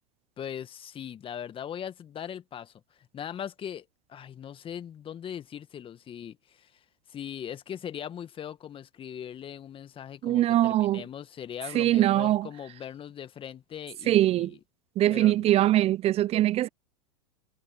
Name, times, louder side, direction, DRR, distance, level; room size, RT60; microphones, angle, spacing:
voice 1, 0.4-14.6 15.1-15.5, left 9 dB, 25° left, 2.0 m, -40 dB
voice 2, 10.2-11.0 11.7-12.5 14.1-14.5 15.0-16.7, right 14 dB, 30° right, 0.7 m, -22 dB
hypercardioid pair, 95°, 19 cm